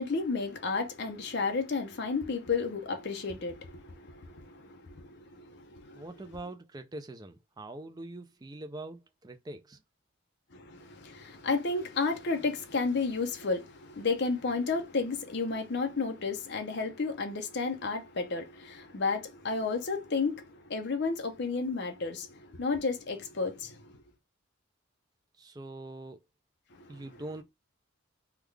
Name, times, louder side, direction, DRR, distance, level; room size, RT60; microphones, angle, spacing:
voice 1, 0.0-6.1 10.5-24.0 26.8-27.0, left 4 dB, 50° left, 0.7 m, -32 dB
voice 2, 5.9-9.8 25.4-26.2 26.9-27.4, right 2 dB, 20° right, 0.4 m, -43 dB
3.5 x 2.3 x 3.2 m
head